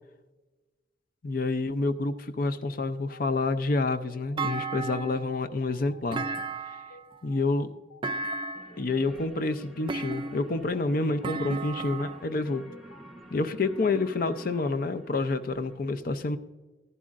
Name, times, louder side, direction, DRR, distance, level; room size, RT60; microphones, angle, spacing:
voice 1, 1.2-6.2 7.2-7.7 8.8-12.6 13.3-16.4, left 3 dB, 50° left, 10 dB, 0.5 m, -28 dB
sound 1, 3.1-13.0, left 3 dB, 85° left, 1.0 m, -53 dB
Thump thud, 4.4-5.3 6.1-7.0 8.0-8.8 9.9-10.6 11.2-12.3, right 3 dB, 25° right, 0.4 m, -33 dB
sound 2, 8.5-15.8, equal, ahead, 1.0 m, -49 dB
13.0 x 11.0 x 2.5 m, 1.2 s
head